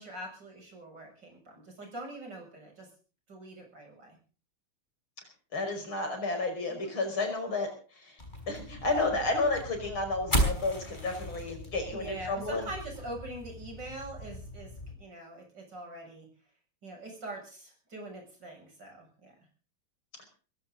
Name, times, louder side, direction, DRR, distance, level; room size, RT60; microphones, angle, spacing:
voice 1, 0.0-2.9 3.3-4.2 6.7-6.9 11.9-16.3 16.8-19.3, right 2 dB, 55° right, 2 dB, 7.9 m, -43 dB
voice 2, 5.5-7.7 8.0-8.2 8.5-12.7 20.2-20.3, left 3 dB, 70° left, 4 dB, 6.2 m, -31 dB
sound 1, 8.2-14.9, equal, 20° left, 5.3 m, -36 dB
20.5 x 17.0 x 4.0 m, 0.39 s
omnidirectional pair, 2.4 m